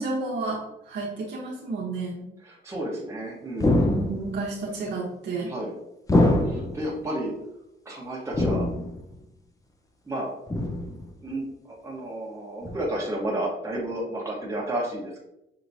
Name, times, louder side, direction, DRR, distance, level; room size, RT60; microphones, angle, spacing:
voice 1, 0.0-2.2 3.8-5.5, right 3 dB, 65° right, -4 dB, 1.0 m, -31 dB
voice 2, 2.4-3.8 5.5-5.7 6.5-7.3 7.8-8.7 10.1-10.3 11.2-15.2, right 1 dB, 15° right, -5 dB, 1.2 m, -31 dB
sound 1, 3.6-4.4 6.1-6.9 8.3-9.1 10.5-11.1 12.6-12.8, left 1 dB, 15° left, 0.6 m, -23 dB
5.9 x 2.9 x 2.7 m, 0.86 s
cardioid pair, 90°, 20 cm